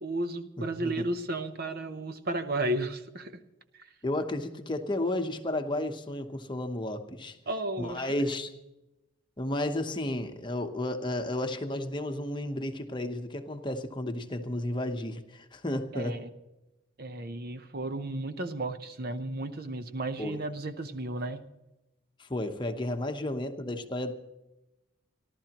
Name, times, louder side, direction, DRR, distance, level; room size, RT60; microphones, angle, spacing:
voice 1, 0.0-3.4 3.7-3.9 7.5-8.1 15.9-16.3 17.0-21.4, right 2 dB, 45° right, 9 dB, 0.8 m, -33 dB
voice 2, 0.6-1.1 4.0-7.4 7.8-8.5 9.4-16.1 20.2-20.4 22.2-24.1, left 1 dB, 20° left, 6 dB, 0.9 m, -32 dB
29.0 x 12.0 x 3.0 m, 0.98 s
head